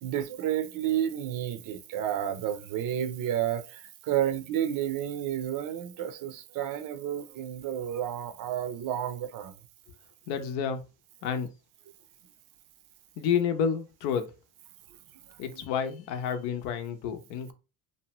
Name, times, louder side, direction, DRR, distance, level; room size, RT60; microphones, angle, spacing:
voice 1, 0.0-9.5, right 10 dB, 55° right, 0.5 m, -31 dB
voice 2, 10.3-10.8 11.2-11.5 13.2-14.3 15.4-17.5, left 7 dB, 75° left, 0.7 m, -29 dB
2.6 x 2.1 x 2.9 m
supercardioid pair, 95°, 38 cm